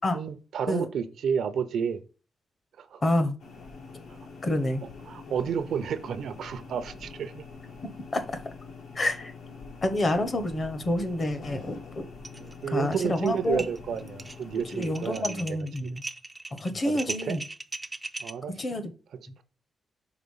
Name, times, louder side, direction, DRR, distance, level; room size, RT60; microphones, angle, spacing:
voice 1, 0.1-2.0 2.8-3.0 5.1-7.4 12.4-15.9 16.8-17.4 18.2-18.8, right 7 dB, 70° right, 0.5 m, -31 dB
voice 2, 3.0-3.4 4.4-4.8 7.8-8.4 8.9-9.3 9.8-12.0 12.7-13.6 14.7-16.0 16.6-17.4 18.6-18.9, left 1 dB, 30° left, 0.7 m, -28 dB
sound 1, 3.4-15.2, left 4 dB, 80° left, 1.2 m, -45 dB
sound 2, 12.2-12.5 12.8-13.3 13.6-18.3, right 2 dB, 15° right, 0.3 m, -38 dB
4.9 x 3.8 x 5.5 m
wide cardioid pair, 170°, 0 cm